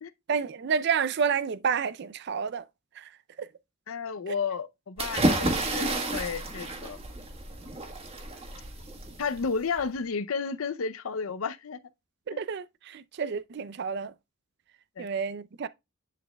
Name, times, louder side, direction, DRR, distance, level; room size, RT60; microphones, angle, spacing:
voice 1, 0.3-2.6 3.0-3.1 3.4-3.5 4.3-4.4 12.3-14.1 15.0-15.7, right 6 dB, 50° right, 0.4 m, -30 dB
voice 2, 3.9-7.0 9.2-11.8 12.3-12.4 15.0-15.1, left 5 dB, 75° left, 0.6 m, -32 dB
sound 1, 5.0-9.8, right 2 dB, 25° right, 1.4 m, -30 dB
10.5 x 4.2 x 2.3 m
head